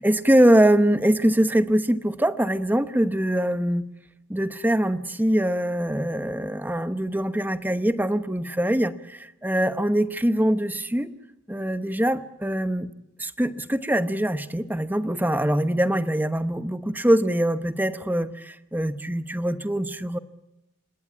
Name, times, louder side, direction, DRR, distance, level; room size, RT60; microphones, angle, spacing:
voice 1, 0.0-3.8 4.3-11.1 11.5-12.9 13.2-20.2, right 1 dB, 10° right, 11 dB, 0.9 m, -23 dB
29.5 x 17.5 x 8.6 m, 0.92 s
head